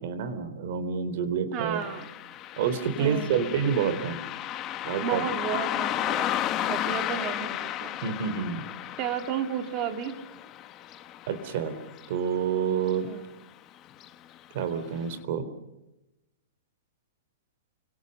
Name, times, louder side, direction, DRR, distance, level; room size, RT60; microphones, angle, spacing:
voice 1, 0.0-1.8 2.6-4.2 4.8-5.2 8.0-8.6 11.3-11.7 12.1-13.1 14.5-15.5, right 7 dB, 45° right, 12 dB, 3.8 m, -28 dB
voice 2, 1.5-2.1 3.0-3.8 5.0-6.3 6.7-7.9 9.0-10.2 13.0-13.3, right 8 dB, 25° right, 6 dB, 2.5 m, -33 dB
Car passing by, 1.8-12.6 12.9-13.0 13.9-14.1 14.6-14.7 15.2-15.3, left 12 dB, 20° left, 1.1 m, -33 dB
30.0 x 26.5 x 5.5 m, 0.97 s
hypercardioid pair, 170°, 0 cm